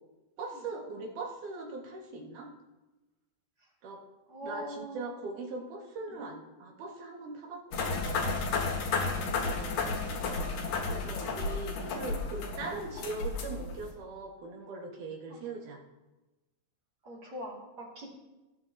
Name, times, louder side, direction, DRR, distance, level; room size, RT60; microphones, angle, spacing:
voice 1, 0.4-2.5 3.8-4.0 4.4-8.3 9.4-9.8 10.7-15.8, right 3 dB, 70° right, 0 dB, 3.2 m, -41 dB
voice 2, 4.3-5.1 9.2-9.4 15.3-15.4 17.0-18.1, equal, 30° right, -3 dB, 2.8 m, -42 dB
sound 1, 7.7-13.9, left 4 dB, 85° left, 3.1 m, -32 dB
18.5 x 10.5 x 2.8 m, 1.1 s
omnidirectional pair, 3.8 m